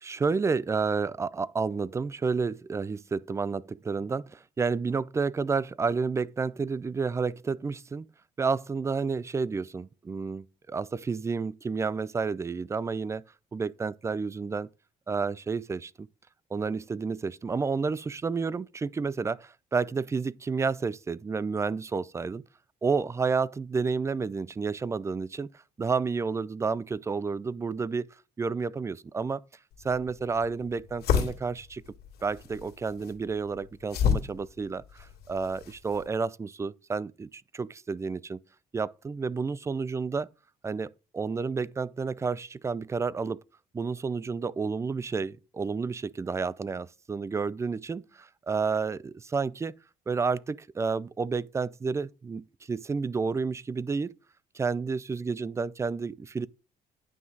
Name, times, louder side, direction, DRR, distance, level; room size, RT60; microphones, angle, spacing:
voice 1, 0.0-8.1 8.4-13.2 13.5-14.7 15.1-16.1 16.5-22.4 22.8-25.5 25.8-28.1 28.4-29.4 29.8-31.8 32.2-38.4 38.7-40.3 40.6-43.4 43.7-49.8 50.1-54.1 54.5-56.5, right 4 dB, 15° right, 0.3 m, -30 dB
sound 1, 29.7-36.1, left 7 dB, 70° left, 2.5 m, -32 dB
9.4 x 5.9 x 3.9 m
cardioid pair, 110°, 17 cm